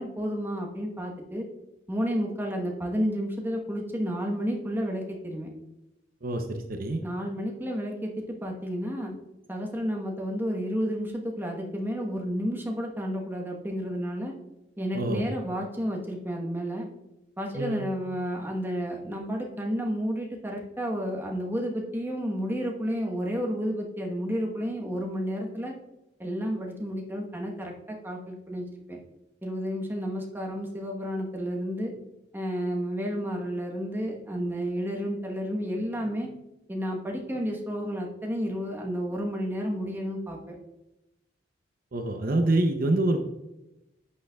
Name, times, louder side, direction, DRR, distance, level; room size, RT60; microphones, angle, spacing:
voice 1, 0.0-1.5 1.9-5.5 7.0-9.1 9.5-14.3 14.8-16.9 17.4-25.7 26.2-29.0 29.4-31.9 32.3-36.3 36.7-40.5, equal, 10° right, 0 dB, 1.1 m, -31 dB
voice 2, 6.2-7.0 14.9-15.2 17.5-17.8 41.9-43.2, right 2 dB, 50° right, 5 dB, 0.6 m, -26 dB
11.0 x 6.4 x 2.3 m, 0.94 s
head